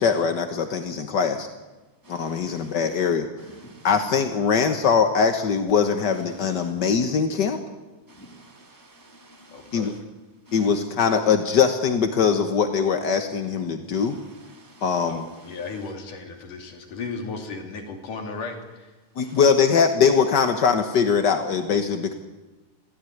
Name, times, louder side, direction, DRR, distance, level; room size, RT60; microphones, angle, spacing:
voice 1, 0.0-1.5 2.1-3.3 3.8-7.6 9.7-9.9 10.5-14.2 14.8-15.3 19.2-22.1, left 6 dB, 60° left, 1.1 m, -21 dB
voice 2, 2.0-3.1 3.4-4.1 6.1-6.7 8.1-10.0 10.4-10.8 13.9-15.9 19.2-19.4, right 1 dB, 5° left, 2.3 m, -50 dB
voice 3, 9.5-9.9 15.1-18.6, left 4 dB, 80° left, 4.4 m, -35 dB
22.0 x 16.5 x 9.3 m
omnidirectional pair, 3.6 m